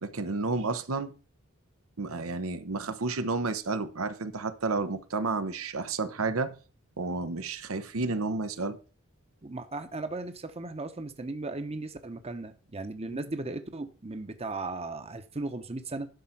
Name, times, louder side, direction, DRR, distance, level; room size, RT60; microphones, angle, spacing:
voice 1, 0.0-1.1 2.0-6.6 7.0-8.8 13.0-13.2, right 3 dB, 85° right, 0.9 m, -31 dB
voice 2, 9.4-16.1, right 2 dB, 30° right, 0.9 m, -36 dB
11.5 x 4.4 x 5.8 m
head